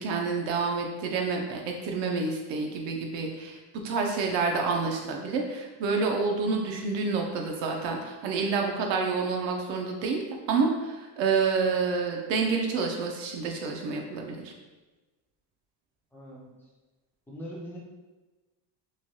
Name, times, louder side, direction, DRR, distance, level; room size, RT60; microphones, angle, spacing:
voice 1, 0.0-10.2 10.5-14.5, right 4 dB, 70° right, 1 dB, 0.5 m, -28 dB
voice 2, 16.1-16.7 17.3-17.8, equal, 5° left, -6 dB, 0.3 m, -42 dB
3.1 x 2.2 x 2.6 m, 1.2 s
cardioid pair, 155°, 44 cm